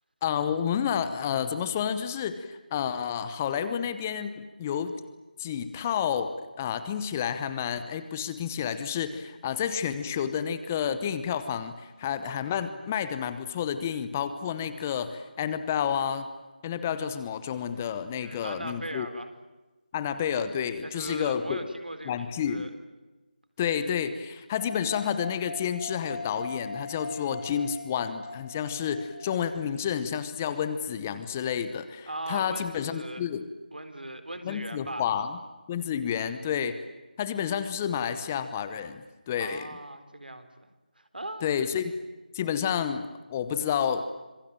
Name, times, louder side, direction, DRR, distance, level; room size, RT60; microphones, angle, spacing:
voice 1, 0.2-4.9 5.4-16.3 16.6-19.1 19.9-21.6 22.1-22.6 23.6-33.5 34.4-35.4 35.7-36.8 37.2-39.7 41.4-41.9 42.3-44.1, left 8 dB, 15° left, 11 dB, 1.0 m, -30 dB
voice 2, 18.2-19.3 20.8-22.8 32.1-33.3 33.7-35.1 39.4-40.7 41.0-41.5, right 1 dB, 80° right, 10 dB, 4.2 m, -39 dB
sound 1, 24.6-29.8, left 2 dB, 80° left, 2.1 m, -41 dB
26.5 x 23.0 x 9.0 m, 1.2 s
figure-of-eight pair, 165°, 5 cm